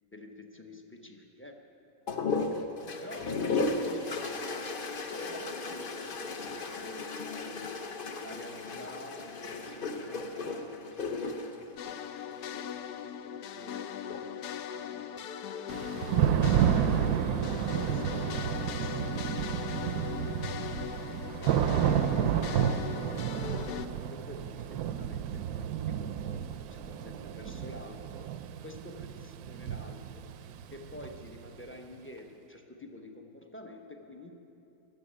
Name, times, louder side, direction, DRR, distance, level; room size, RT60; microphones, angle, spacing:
voice 1, 0.0-1.6 2.5-2.7 3.0-7.8 8.2-15.3 15.9-19.7 20.2-21.0 21.4-23.0 24.1-28.2 28.6-30.4 30.7-34.3, left 1 dB, 15° left, 3 dB, 0.5 m, -49 dB
sound 1, 2.1-12.7 13.9-14.5, left 3 dB, 45° left, 0.8 m, -35 dB
sound 2, 11.8-23.9, left 9 dB, 85° left, 1.2 m, -39 dB
Thunder / Rain, 15.7-31.5, right 9 dB, 75° right, 1.0 m, -31 dB
14.5 x 7.4 x 10.0 m, 3.0 s
omnidirectional pair, 1.7 m